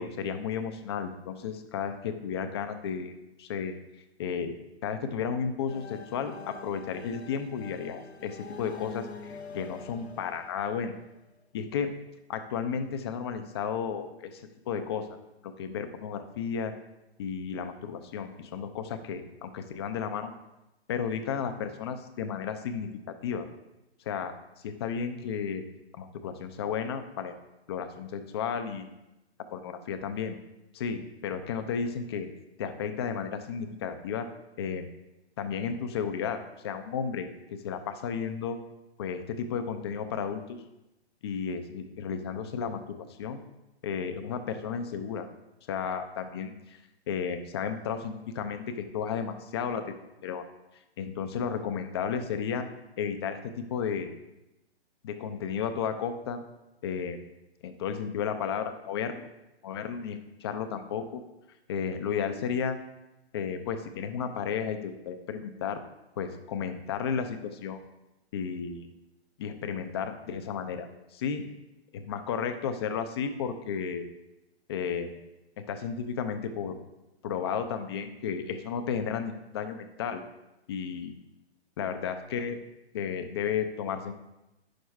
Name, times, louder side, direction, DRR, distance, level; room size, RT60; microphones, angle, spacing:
voice 1, 0.0-3.1 3.4-3.7 4.2-4.5 4.8-11.0 11.5-11.9 12.3-15.2 15.4-16.7 17.2-20.3 20.9-22.9 23.2-23.5 24.1-24.3 24.6-25.6 26.0-27.3 27.7-28.9 29.5-30.4 30.7-32.3 32.6-34.3 34.6-34.9 35.4-38.6 39.0-40.6 41.2-43.4 43.8-45.3 45.7-46.8 47.1-49.8 50.2-50.4 51.0-52.7 53.0-54.1 55.0-56.4 56.8-57.2 57.6-59.3 59.6-61.2 61.7-62.8 63.3-65.8 66.2-67.8 68.3-68.9 69.4-71.5 71.9-74.0 74.7-75.2 75.6-76.8 77.2-80.2 80.7-81.1 81.8-82.6 82.9-84.1, left 7 dB, 25° left, 8 dB, 0.6 m, -33 dB
sound 1, 5.7-11.4, left 5 dB, 75° left, 0.8 m, -45 dB
10.0 x 6.5 x 3.4 m, 0.94 s
figure-of-eight pair, 125°, 33 cm